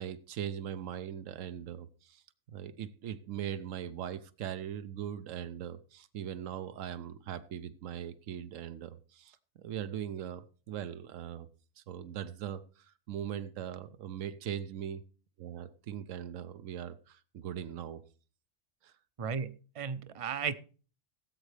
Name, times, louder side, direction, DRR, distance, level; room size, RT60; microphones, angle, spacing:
voice 1, 0.0-2.2 2.5-11.5 11.8-15.0 15.4-18.0 18.8-18.9, right 9 dB, 90° right, 1.1 m, -40 dB
voice 2, 19.2-20.5, right 6 dB, 40° right, 0.5 m, -35 dB
17.5 x 8.2 x 3.3 m
omnidirectional pair, 1.3 m